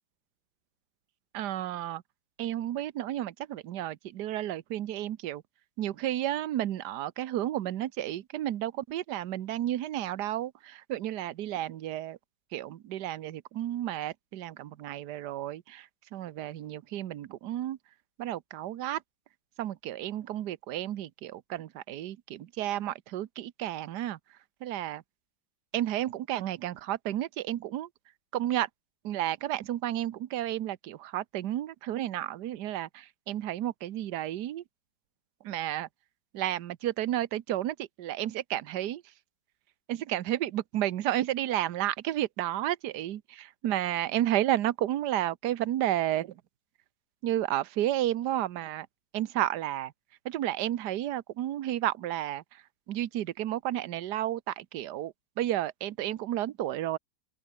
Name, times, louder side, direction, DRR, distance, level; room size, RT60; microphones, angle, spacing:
voice 1, 1.3-2.0 2.4-5.4 5.8-12.2 12.5-17.8 18.2-19.0 19.6-24.2 24.6-25.0 25.7-27.9 28.3-28.7 29.0-34.6 35.4-35.9 36.3-39.0 39.9-46.4 47.2-48.9 49.1-49.9 50.2-57.0, right 13 dB, 65° right, 1.4 m, -32 dB
open air
omnidirectional pair, 2.0 m